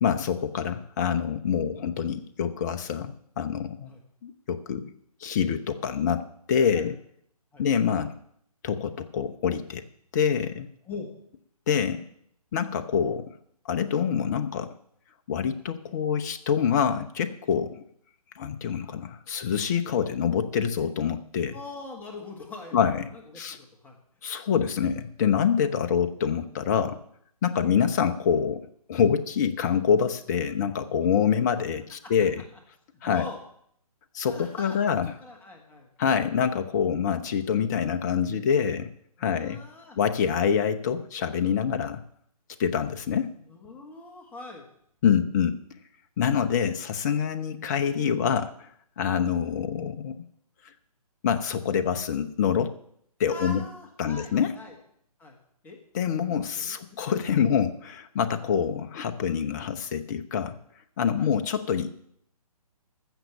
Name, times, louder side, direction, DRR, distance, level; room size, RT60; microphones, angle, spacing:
voice 1, 0.0-3.9 4.2-4.8 5.2-7.0 7.6-8.1 8.6-9.8 10.1-10.7 11.7-12.0 12.5-13.3 13.6-14.7 15.3-17.8 18.4-21.6 22.7-23.0 23.3-23.6 24.2-27.0 27.4-28.6 28.9-32.4 33.0-33.2 34.1-35.1 36.0-38.9 39.2-39.6 40.0-42.0 42.6-43.3 45.0-45.6 46.2-48.5 49.0-50.2 51.2-52.7 53.2-53.6 54.0-54.5 55.9-60.5 61.0-61.9, left 7 dB, 30° left, 8 dB, 0.6 m, -26 dB
voice 2, 21.5-23.9 33.0-33.4 34.2-35.9 39.2-40.0 43.5-44.7 47.9-48.1 49.1-49.3 53.3-54.8 55.2-55.4 55.6-55.8 56.5-56.7 58.4-58.5 61.2-61.3, left 3 dB, 10° left, 0 dB, 1.5 m, -42 dB
15.0 x 6.4 x 7.0 m, 0.68 s
figure-of-eight pair, 140°, 20 cm